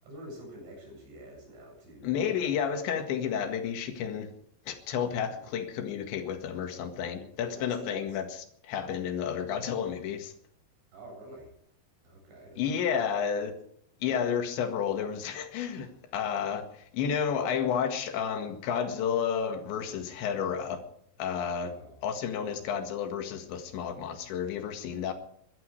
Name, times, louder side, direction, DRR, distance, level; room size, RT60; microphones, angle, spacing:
voice 1, 0.0-2.5 5.4-5.6 7.4-8.2 10.9-11.5 12.0-13.3 15.7-16.0 21.6-22.0 22.4-22.7, right 1 dB, 90° right, 10.5 m, -48 dB
voice 2, 2.0-4.3 4.7-8.2 8.6-10.3 12.6-13.5 14.0-20.8 21.2-21.7 22.0-25.1, left 7 dB, 75° left, 4.1 m, -31 dB
24.0 x 12.5 x 4.8 m
omnidirectional pair, 5.2 m